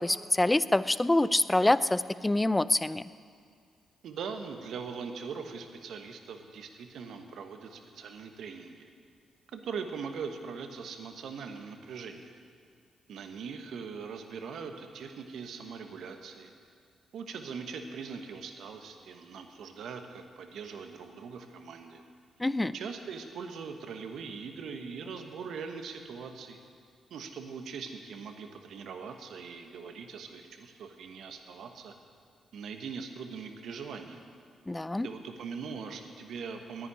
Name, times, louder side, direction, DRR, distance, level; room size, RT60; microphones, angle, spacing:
voice 1, 0.0-3.0 22.4-22.7 34.7-35.1, left 2 dB, 15° left, 16 dB, 0.5 m, -26 dB
voice 2, 4.0-8.9 9.5-12.3 13.1-16.5 17.1-22.0 22.7-26.6 27.1-31.9 32.5-34.3 35.0-36.9, right 5 dB, 75° right, 6 dB, 1.2 m, -41 dB
10.5 x 10.0 x 9.7 m, 2.2 s
supercardioid pair, 55°, 0 cm